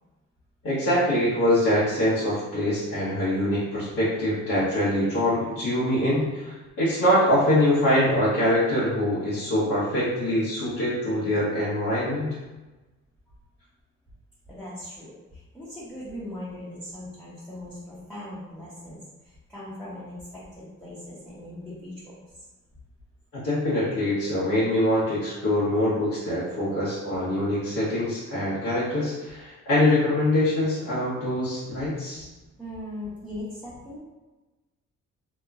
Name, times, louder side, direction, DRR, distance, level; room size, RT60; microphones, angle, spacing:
voice 1, 0.6-12.3 23.3-32.2, left 1 dB, 90° left, -12 dB, 1.1 m, -24 dB
voice 2, 14.5-22.1 32.6-34.0, left 1 dB, ahead, -11 dB, 0.8 m, -39 dB
2.9 x 2.2 x 2.4 m, 1.1 s
cardioid pair, 90°, 30 cm